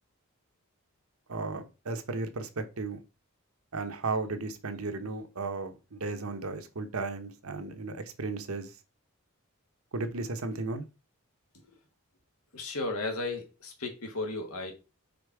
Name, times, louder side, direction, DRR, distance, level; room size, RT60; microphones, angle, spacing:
voice 1, 1.3-3.0 3.7-8.7 9.9-10.8, right 3 dB, 80° right, 0.9 m, -35 dB
voice 2, 12.5-14.7, left 2 dB, 85° left, 1.7 m, -34 dB
5.0 x 4.4 x 4.7 m
head